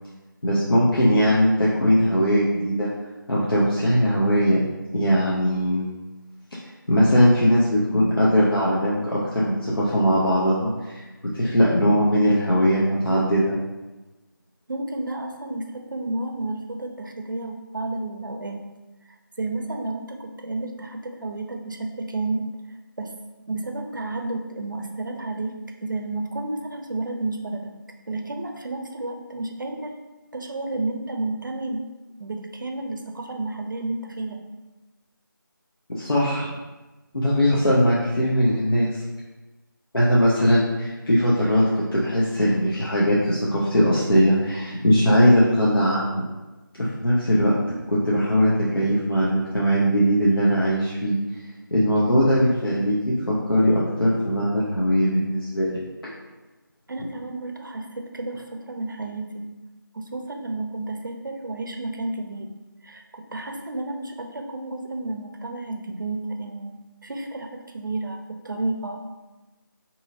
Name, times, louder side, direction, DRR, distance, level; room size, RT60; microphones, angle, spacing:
voice 1, 0.4-2.9 3.3-4.6 4.9-5.9 6.9-11.0 11.3-13.6 35.9-36.5 37.1-38.9 39.9-46.2 46.8-47.5 47.9-51.2 51.7-53.0 53.3-55.8, equal, 90° left, -7 dB, 0.8 m, -20 dB
voice 2, 14.7-18.6 19.4-22.5 23.0-23.1 23.5-25.5 25.8-27.7 28.1-30.0 30.3-31.9 32.2-34.4 56.9-59.5 59.9-62.5 62.8-69.0, right 2 dB, 65° right, 4 dB, 0.5 m, -31 dB
3.7 x 2.9 x 2.6 m, 1.1 s
figure-of-eight pair, 170°, 12 cm